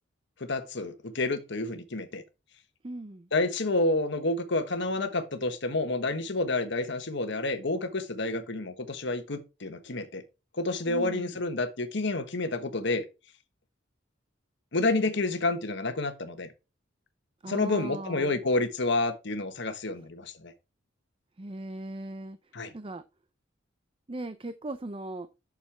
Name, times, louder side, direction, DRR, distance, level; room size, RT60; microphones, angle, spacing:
voice 1, 0.4-2.2 3.3-10.2 10.6-13.0 14.7-16.5 17.5-20.5 22.5-22.7, left 2 dB, 60° left, 1.3 m, -29 dB
voice 2, 2.8-3.3 10.9-11.4 17.4-18.4 21.4-22.4 22.7-23.0 24.1-25.3, right 2 dB, 30° right, 0.5 m, -38 dB
8.7 x 6.6 x 3.4 m
head